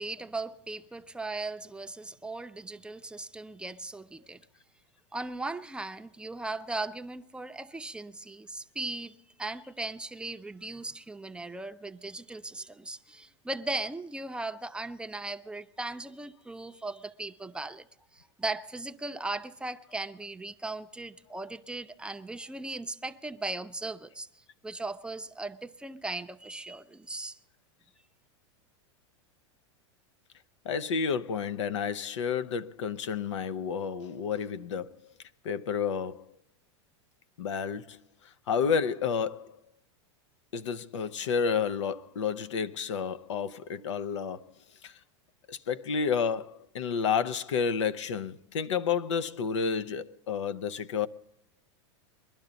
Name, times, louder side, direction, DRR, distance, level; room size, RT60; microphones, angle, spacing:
voice 1, 0.0-4.4 5.1-17.9 18.1-27.4, right 2 dB, 5° right, 0.5 m, -38 dB
voice 2, 30.6-35.0 35.4-36.3 37.4-39.6 40.5-44.5 44.8-45.0 45.5-51.1, left 6 dB, 90° left, 0.6 m, -30 dB
22.0 x 12.0 x 4.0 m
hypercardioid pair, 120°, 15 cm